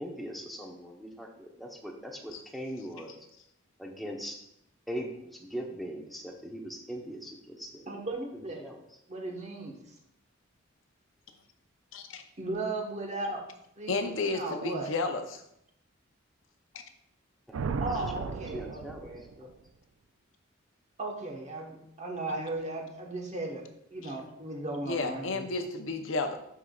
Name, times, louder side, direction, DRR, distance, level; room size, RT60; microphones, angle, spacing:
voice 1, 0.0-3.2 3.8-4.4 4.9-7.8 8.3-8.8 17.5-17.6 18.2-19.1 19.4-19.5, equal, ahead, 0 dB, 0.8 m, -40 dB
voice 2, 7.9-8.6 9.1-9.7 12.4-13.4 13.8-13.9 14.3-14.9 17.8-19.5 21.0-23.6 23.9-25.4, right 2 dB, 35° right, 1 dB, 1.2 m, -36 dB
voice 3, 11.9-12.2 13.9-15.4 24.9-26.4, left 3 dB, 65° left, 6 dB, 0.7 m, -32 dB
sound 1, 17.5-19.5, right 5 dB, 90° right, 0.4 m, -35 dB
11.0 x 4.8 x 2.3 m, 0.76 s
head